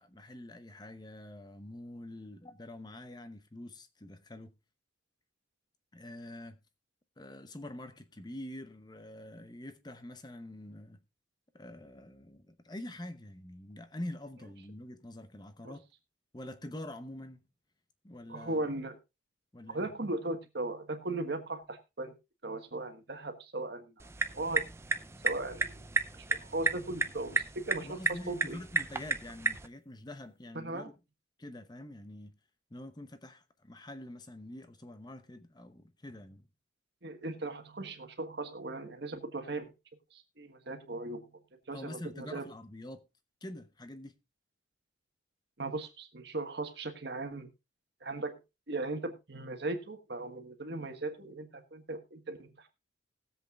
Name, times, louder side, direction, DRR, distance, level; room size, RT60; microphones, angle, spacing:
voice 1, 0.0-4.5 5.9-6.6 7.2-11.0 11.5-15.9 16.3-17.4 18.0-18.7 19.5-19.9 27.8-31.0 31.4-32.3 32.7-36.5 41.7-43.0 43.4-44.2, left 1 dB, 20° left, 0.8 m, -46 dB
voice 2, 18.3-19.0 19.7-22.1 22.4-23.9 24.3-24.6 25.2-25.8 26.3-28.6 30.5-30.9 37.0-39.7 40.1-41.3 41.7-42.5 45.6-47.5 48.0-48.4 48.7-52.5, right 2 dB, 55° right, 1.5 m, -38 dB
sound 1, 24.0-29.7, right 3 dB, 15° right, 0.5 m, -33 dB
20.0 x 7.8 x 2.4 m
head